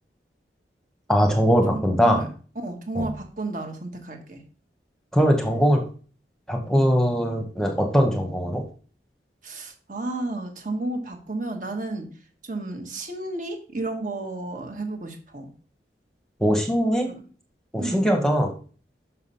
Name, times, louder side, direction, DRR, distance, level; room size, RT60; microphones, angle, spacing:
voice 1, 1.1-2.3 2.9-3.1 5.1-5.8 6.5-8.6 16.4-17.1 17.7-18.5, equal, 5° left, 2 dB, 1.0 m, -21 dB
voice 2, 1.7-2.3 2.6-4.4 9.4-12.1 12.4-15.5 17.8-18.0, right 2 dB, 45° right, 3 dB, 1.6 m, -32 dB
5.9 x 5.8 x 5.6 m, 0.40 s
head